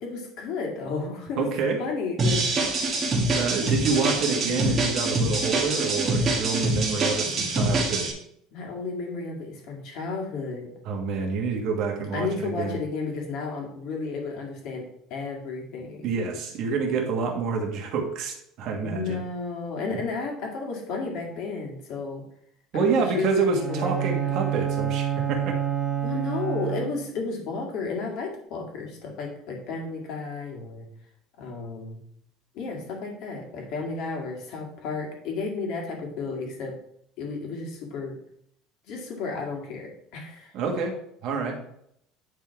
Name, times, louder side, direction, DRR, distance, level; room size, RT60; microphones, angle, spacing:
voice 1, 0.0-1.5 1.8-2.7 8.5-10.7 12.1-16.1 18.8-22.2 22.7-24.5 26.0-30.9 31.4-32.0 32.5-36.8 37.2-38.2 38.9-40.5, left 4 dB, 50° left, 1 dB, 2.0 m, -33 dB
voice 2, 1.4-1.8 3.3-8.1 10.8-12.8 16.0-19.2 19.9-20.0 22.7-25.6 40.5-41.0 41.2-41.6, right 5 dB, 40° right, 2 dB, 1.5 m, -27 dB
sound 1, 2.2-8.1, right 2 dB, 20° right, 1.8 m, -25 dB
Bowed string instrument, 23.5-27.2, right 10 dB, 5° right, 0.9 m, -28 dB
9.8 x 3.7 x 4.6 m, 0.71 s
cardioid pair, 180°, 0 cm